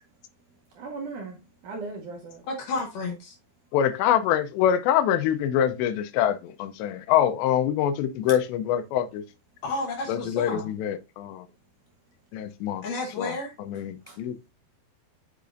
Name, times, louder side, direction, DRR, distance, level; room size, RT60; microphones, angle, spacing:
voice 1, 0.7-2.5 13.8-14.2, right 3 dB, 80° right, 1.8 m, -39 dB
voice 2, 2.5-3.3 9.6-10.7 12.8-13.5, left 3 dB, 70° left, 2.2 m, -31 dB
voice 3, 3.7-9.2 10.1-11.5 12.3-12.8 13.2-14.4, left 10 dB, 85° left, 2.9 m, -25 dB
8.2 x 5.6 x 2.5 m
omnidirectional pair, 4.9 m